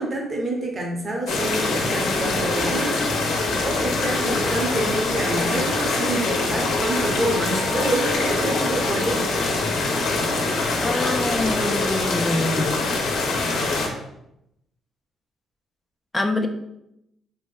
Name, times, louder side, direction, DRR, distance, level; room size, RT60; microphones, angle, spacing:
voice 1, 0.0-3.0 3.6-9.5, right 1 dB, 35° right, -1 dB, 0.7 m, -27 dB
sound 1, 1.3-13.9, left 3 dB, 80° left, 0.5 m, -24 dB
Wind instrument woodwind instrument, 5.7-9.2, left 1 dB, 75° right, 1.1 m, -40 dB
voice 2, 10.8-12.7 16.1-16.5, left 2 dB, 15° left, 5 dB, 0.4 m, -25 dB
3.0 x 2.6 x 2.3 m, 0.83 s
cardioid pair, 90°, 0 cm